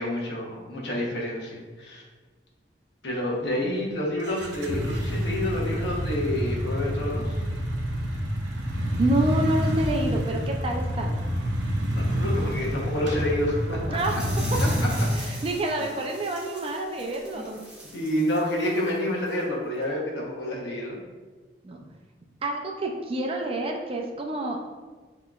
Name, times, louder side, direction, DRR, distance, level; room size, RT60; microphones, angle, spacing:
voice 1, 0.0-2.0 3.0-7.4 11.9-14.0 17.3-17.4 17.9-21.0, left 1 dB, 70° left, -3 dB, 1.0 m, -29 dB
sound 1, 4.2-15.1, equal, 75° right, 0.6 m, -27 dB
voice 2, 8.8-11.2 13.9-14.5 15.1-17.6 21.6-21.8 22.4-24.6, right 2 dB, 30° right, 1 dB, 0.4 m, -28 dB
sound 2, 13.9-19.0 19.3-19.4 19.8-19.9, right 1 dB, 5° right, 0.7 m, -42 dB
5.9 x 3.0 x 2.4 m, 1.3 s
head